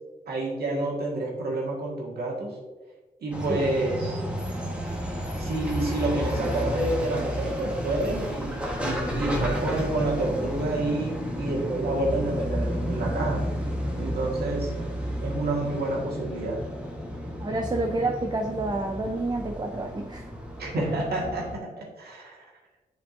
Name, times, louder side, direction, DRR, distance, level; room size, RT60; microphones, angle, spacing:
voice 1, 0.3-2.5 3.2-4.2 5.4-13.5 13.9-14.7 15.2-16.6 20.6-22.4, right 2 dB, 80° right, -3 dB, 1.8 m, -29 dB
sound 1, 3.3-21.6, equal, 5° right, 1.3 m, -32 dB
voice 2, 17.4-20.2, right 2 dB, 25° right, 2 dB, 0.6 m, -29 dB
7.4 x 5.1 x 2.6 m, 1.2 s
cardioid pair, 70°, 16 cm